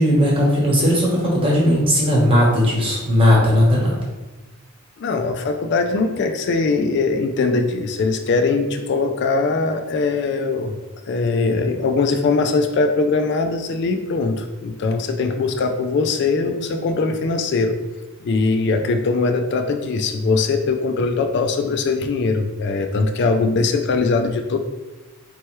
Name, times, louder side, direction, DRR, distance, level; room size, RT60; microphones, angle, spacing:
voice 1, 0.0-3.9, equal, 25° right, -3 dB, 1.0 m, -17 dB
voice 2, 5.0-10.8 11.1-17.8 18.2-24.6, left 3 dB, 50° left, 5 dB, 0.3 m, -21 dB
4.4 x 3.2 x 3.0 m, 1.1 s
head